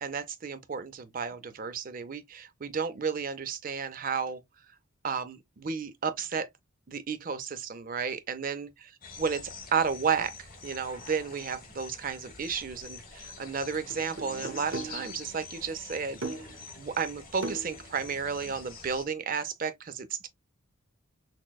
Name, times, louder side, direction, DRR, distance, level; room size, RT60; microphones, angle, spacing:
voice 1, 0.0-4.4 5.0-6.5 6.9-8.9 9.2-9.4 9.7-10.3 10.6-16.2 16.8-20.3, right 6 dB, 40° right, 0.5 m, -32 dB
sound 1, 9.0-19.0, left 4 dB, 40° left, 1.5 m, -46 dB
sound 2, 12.8-13.0 13.9-15.1 16.2-16.6 17.4-18.7, right 3 dB, 60° right, 0.8 m, -39 dB
6.0 x 2.2 x 2.3 m
head